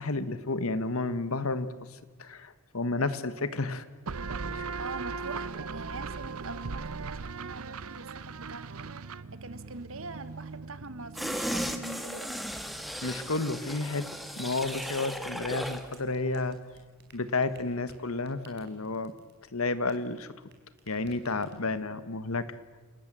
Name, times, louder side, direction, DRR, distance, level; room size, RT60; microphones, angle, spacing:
voice 1, 0.0-3.8 4.5-4.8 13.0-14.1 14.3-16.6 17.1-19.1 19.5-20.3 20.9-22.5, left 3 dB, 80° left, 13 dB, 1.5 m, -31 dB
sound 1, 4.1-11.4, right 4 dB, 90° right, 0.8 m, -38 dB
voice 2, 4.8-8.9 9.3-12.4, right 3 dB, 70° right, 12 dB, 1.5 m, -43 dB
sound 2, 11.1-15.9 16.3-16.4, equal, ahead, 1.5 m, -36 dB
sound 3, 13.6-20.5 20.8-21.8, right 5 dB, 50° right, 4.2 m, -57 dB
29.5 x 19.0 x 7.7 m, 1.3 s
head